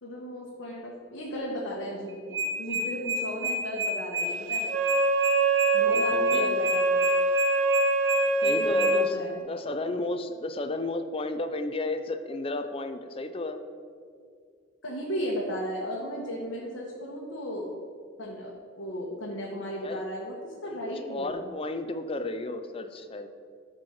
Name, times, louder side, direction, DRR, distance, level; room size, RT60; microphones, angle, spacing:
voice 1, 0.0-2.1 2.6-4.7 5.7-7.1 8.4-9.4 14.8-17.7 18.2-18.5 18.8-21.4, equal, 90° left, -4 dB, 1.2 m, -35 dB
sound 1, 2.1-8.9, right 1 dB, 15° right, 0.6 m, -29 dB
Wind instrument woodwind instrument, 4.6-9.1, right 3 dB, 85° right, 0.9 m, -24 dB
voice 2, 5.8-6.7 8.4-9.2 9.5-13.6 19.8-20.0 20.6-23.3, left 2 dB, 30° left, 9 dB, 0.5 m, -33 dB
12.0 x 4.4 x 4.7 m, 2.1 s
head